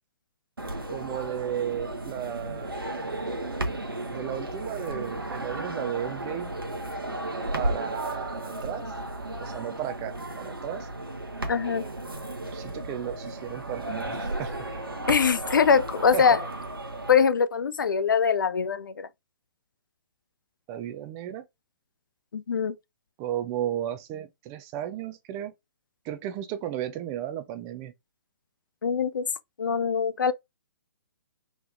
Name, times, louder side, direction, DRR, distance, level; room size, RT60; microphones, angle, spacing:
sound 1, 0.6-17.1, right 2 dB, 80° right, 0.9 m, -34 dB
voice 1, 0.9-3.2 4.1-6.5 7.5-8.9 9.4-10.9 12.3-14.5 16.1-16.4 20.7-21.4 23.2-25.5 26.0-27.9, right 11 dB, 20° right, 0.5 m, -34 dB
voice 2, 11.5-11.8 15.1-16.4 17.1-19.1 22.3-22.8 28.8-29.3 29.6-30.3, left 6 dB, 65° left, 0.4 m, -23 dB
3.4 x 3.1 x 2.6 m
figure-of-eight pair, 125°, 12 cm